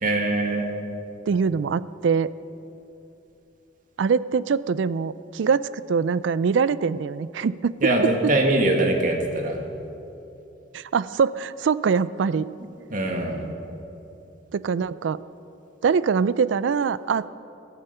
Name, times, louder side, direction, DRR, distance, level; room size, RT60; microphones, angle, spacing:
voice 1, 0.0-0.6 7.8-9.6 12.9-13.4, right 2 dB, 45° right, 2 dB, 2.1 m, -22 dB
voice 2, 1.3-2.3 4.0-7.7 10.7-12.5 14.5-15.2 15.8-17.3, right 5 dB, 75° right, 17 dB, 0.4 m, -23 dB
16.0 x 14.0 x 5.6 m, 2.8 s
head